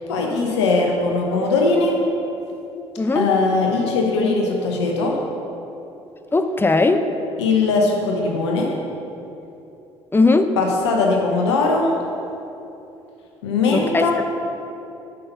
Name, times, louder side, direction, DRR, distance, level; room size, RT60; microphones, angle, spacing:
voice 1, 0.0-2.0 3.1-5.2 7.4-8.7 10.6-11.9 13.4-14.2, left 3 dB, 80° left, 0 dB, 0.9 m, -20 dB
voice 2, 6.3-7.0 10.1-10.5 13.7-14.2, left 3 dB, 15° left, 8 dB, 0.6 m, -18 dB
6.7 x 5.4 x 6.8 m, 2.9 s
hypercardioid pair, 55°, 14 cm